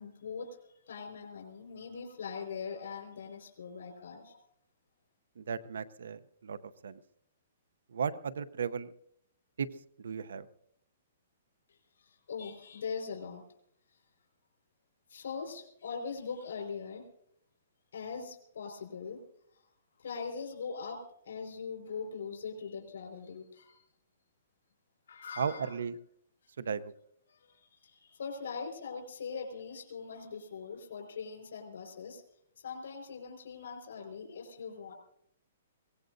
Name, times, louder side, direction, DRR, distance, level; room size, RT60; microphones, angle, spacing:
voice 1, 0.0-4.4 11.7-13.4 15.1-17.0 17.9-19.2 20.0-23.8 25.1-25.8 27.3-32.2 32.6-34.9, left 5 dB, 85° left, 3 dB, 4.5 m, -41 dB
voice 2, 5.4-6.6 6.8-7.0 7.9-8.9 9.6-9.7 10.0-10.5 25.4-25.9 26.6-26.8, right 6 dB, 85° right, 16 dB, 0.7 m, -35 dB
23.0 x 18.5 x 2.6 m, 0.70 s
hypercardioid pair, 180°, 0 cm